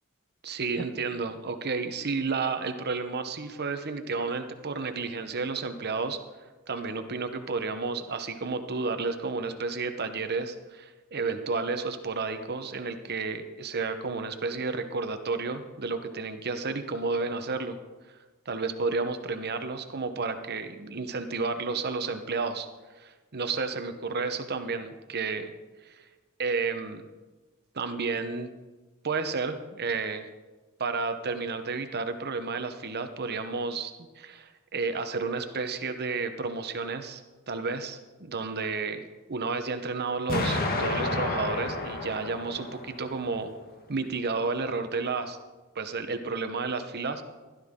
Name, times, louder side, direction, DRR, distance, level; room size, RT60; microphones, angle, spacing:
voice 1, 0.4-6.2 6.7-17.8 18.5-22.7 23.0-25.5 25.8-26.0 26.4-27.0 27.7-28.5 29.0-30.3 30.8-37.2 37.5-43.5 43.9-45.4 45.7-47.2, right 4 dB, 50° right, 8 dB, 1.0 m, -31 dB
Explosion, 40.3-43.3, left 2 dB, 45° left, 1.5 m, -30 dB
16.0 x 12.5 x 3.7 m, 1.2 s
head